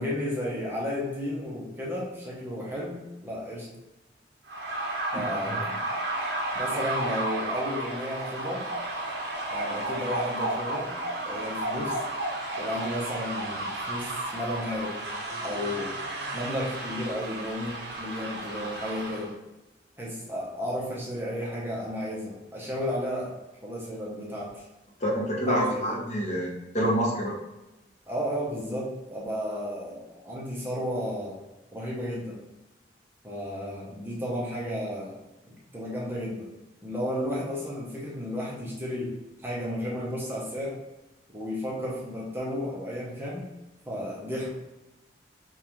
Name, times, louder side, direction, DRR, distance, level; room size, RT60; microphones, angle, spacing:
voice 1, 0.0-3.7 5.1-5.8 6.5-8.7 9.5-11.0 11.2-12.0 12.6-15.0 15.4-16.0 16.3-19.3 20.0-23.3 23.6-24.6 25.5-26.0 28.1-31.4 31.7-32.4 33.2-35.2 35.5-36.5 36.8-40.8 41.3-43.5 43.8-44.5, equal, 10° right, -5 dB, 0.7 m, -33 dB
sound 1, 4.5-19.3, right 1 dB, 65° right, 0.7 m, -32 dB
voice 2, 5.1-5.6 25.0-27.3, equal, 40° left, -3 dB, 0.8 m, -27 dB
5.2 x 2.4 x 2.9 m, 1.0 s
head